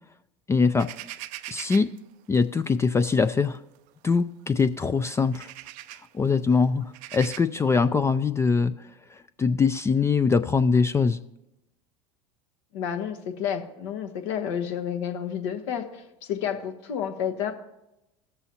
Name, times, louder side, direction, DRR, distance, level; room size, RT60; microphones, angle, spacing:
voice 1, 0.5-0.9 1.5-1.9 2.3-3.6 4.0-5.5 6.1-11.2, left 5 dB, 15° left, 11 dB, 0.3 m, -23 dB
sound 1, 0.8-2.0 3.1-3.3 3.7-3.8 4.6-4.7 5.1-6.1 6.8-7.4, right 15 dB, 55° right, 0.4 m, -40 dB
voice 2, 12.7-16.0 16.3-17.5, left 8 dB, 70° left, 6 dB, 1.1 m, -30 dB
16.5 x 6.9 x 2.8 m, 0.91 s
hypercardioid pair, 85°, 16 cm